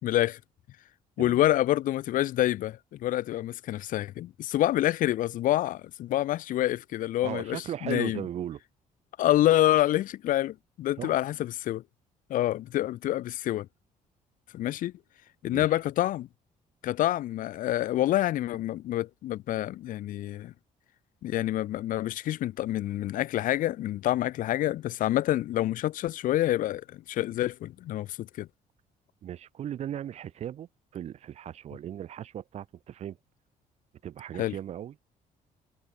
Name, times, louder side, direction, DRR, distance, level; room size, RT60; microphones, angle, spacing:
voice 1, 0.0-0.4 1.2-8.2 9.2-11.8 12.3-13.7 14.5-14.9 15.4-16.3 16.8-20.5 21.2-28.5 34.4-34.5, left 14 dB, 65° left, 2.8 m, -27 dB
voice 2, 7.2-8.6 11.0-11.2 15.5-15.7 29.2-33.2 34.0-34.9, right 10 dB, 45° right, 2.3 m, -37 dB
cardioid pair, 170°, 15 cm